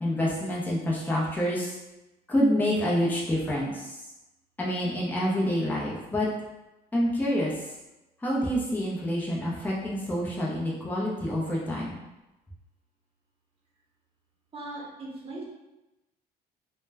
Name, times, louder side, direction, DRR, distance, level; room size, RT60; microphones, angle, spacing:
voice 1, 0.0-1.7 2.3-3.9 4.6-6.3 6.9-7.5 8.2-12.0, equal, 10° left, -5 dB, 0.6 m, -27 dB
voice 2, 14.5-15.4, right 2 dB, 35° right, -4 dB, 0.9 m, -39 dB
2.2 x 2.1 x 3.3 m, 0.98 s
cardioid pair, 110°, 17 cm